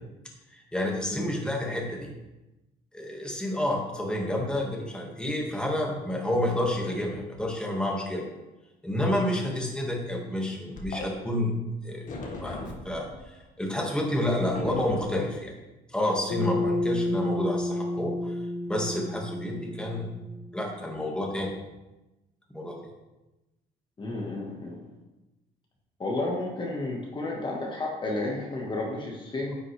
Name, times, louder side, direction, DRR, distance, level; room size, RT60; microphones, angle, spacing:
voice 1, 0.5-2.1 2.9-8.2 8.8-11.5 11.8-12.1 12.4-15.5 15.9-18.4 18.7-20.1 20.5-21.6 22.5-22.8, left 1 dB, 5° left, -1 dB, 1.9 m, -29 dB
sound 1, 10.7-11.1 12.1-13.2 14.5-15.0, left 2 dB, 50° left, 1.7 m, -37 dB
Bass guitar, 16.3-20.7, left 1 dB, 80° left, 1.1 m, -30 dB
voice 2, 24.0-24.9 26.0-29.6, left 2 dB, 30° left, -1 dB, 1.6 m, -32 dB
10.0 x 7.3 x 3.4 m, 1.0 s
cardioid pair, 110°, 17 cm